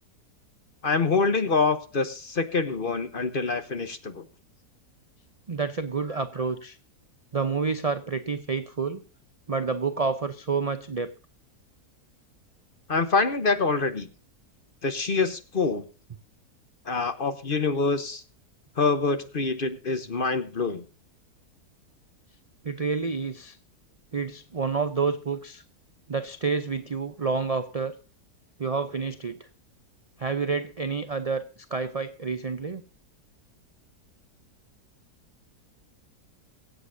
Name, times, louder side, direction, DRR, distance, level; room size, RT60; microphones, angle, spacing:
voice 1, 0.8-4.2 12.9-14.1 14.8-15.8 16.9-18.2 18.8-20.8, left 4 dB, 40° left, 10 dB, 1.0 m, -25 dB
voice 2, 5.5-6.8 7.3-9.0 9.5-11.1 22.6-23.6 24.1-25.6 26.1-28.0 28.6-29.5 30.2-32.8, right 5 dB, 45° right, 10 dB, 0.4 m, -29 dB
23.5 x 8.3 x 2.7 m, 0.37 s
omnidirectional pair, 1.7 m